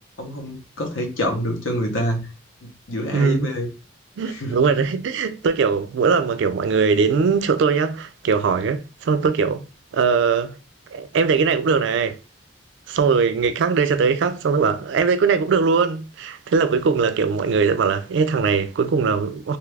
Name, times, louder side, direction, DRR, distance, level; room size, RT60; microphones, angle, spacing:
voice 1, 0.2-2.3 2.6-3.7 4.3-4.6, equal, 85° left, 0.8 m, -27 dB
voice 2, 3.1-3.5 4.2-9.6 9.9-10.6 10.9-12.2 12.9-19.6, right 5 dB, 65° right, 0.3 m, -20 dB
2.7 x 2.3 x 3.2 m
head